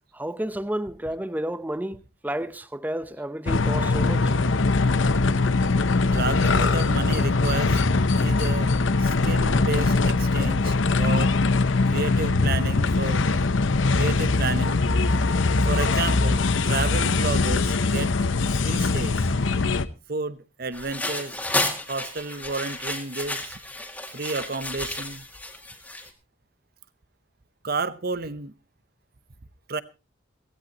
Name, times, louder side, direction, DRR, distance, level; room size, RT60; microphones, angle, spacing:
voice 1, 0.1-4.3, right 1 dB, 10° right, 0.6 m, -31 dB
sound 1, 3.5-19.9, left 3 dB, 70° left, 0.8 m, -22 dB
voice 2, 6.1-7.8 8.2-8.7 9.0-11.3 11.9-13.2 13.9-14.8 15.6-18.3 18.5-19.3 20.1-21.4 21.9-23.6 24.1-25.3 27.6-28.5 29.7-29.8, right 3 dB, 50° right, 0.8 m, -31 dB
sound 2, 20.7-26.1, left 2 dB, 10° left, 2.0 m, -32 dB
17.0 x 16.0 x 3.0 m
head